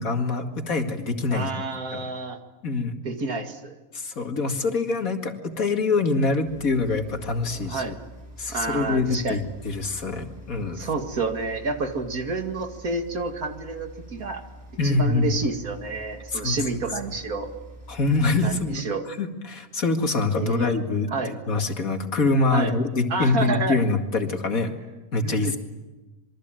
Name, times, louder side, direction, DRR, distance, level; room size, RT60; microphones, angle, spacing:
voice 1, 0.0-1.5 1.9-2.0 2.6-3.0 3.9-7.9 8.4-10.9 14.8-15.3 16.3-16.6 17.9-18.8 19.2-24.8 25.1-25.6, left 3 dB, 75° left, 5 dB, 2.6 m, -25 dB
voice 2, 1.3-2.4 3.0-3.7 7.5-8.0 8.5-9.4 10.7-14.4 14.8-17.5 18.4-19.0 20.4-20.7 21.1-21.3 22.5-22.7 23.1-23.8 25.2-25.6, right 3 dB, 80° right, 6 dB, 2.6 m, -29 dB
sound 1, 6.4-18.8, equal, 50° right, 5.6 m, -45 dB
26.5 x 23.0 x 9.0 m, 1.1 s
omnidirectional pair, 1.5 m